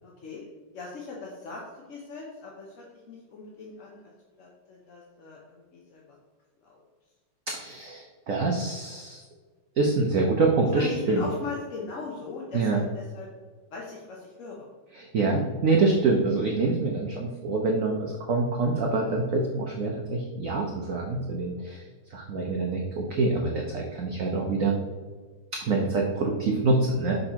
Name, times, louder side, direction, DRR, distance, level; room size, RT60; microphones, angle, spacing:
voice 1, 0.0-0.4 0.7-4.1 4.4-6.2 6.6-6.8 10.7-13.3 13.7-14.6 15.3-15.4, left 4 dB, 55° left, -3 dB, 1.0 m, -39 dB
voice 2, 7.5-9.2 9.8-11.2 12.5-12.8 14.9-21.8 22.1-24.8 25.5-27.2, right 3 dB, 60° right, 0 dB, 0.9 m, -26 dB
6.4 x 5.3 x 2.9 m, 1.5 s
omnidirectional pair, 1.9 m